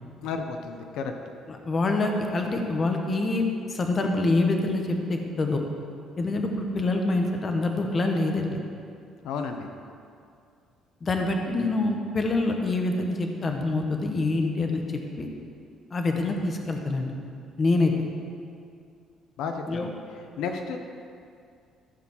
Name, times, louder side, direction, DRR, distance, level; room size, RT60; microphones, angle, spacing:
voice 1, 0.2-1.1 9.2-9.7 19.4-19.9 20.4-20.8, left 5 dB, 80° left, 5 dB, 0.8 m, -32 dB
voice 2, 1.5-3.4 3.7-5.6 6.2-8.6 11.0-15.3 15.9-17.1 17.6-17.9 19.7-19.9, left 2 dB, 25° left, 3 dB, 1.0 m, -26 dB
14.5 x 4.9 x 7.2 m, 2.4 s
cardioid pair, 155°, 0 cm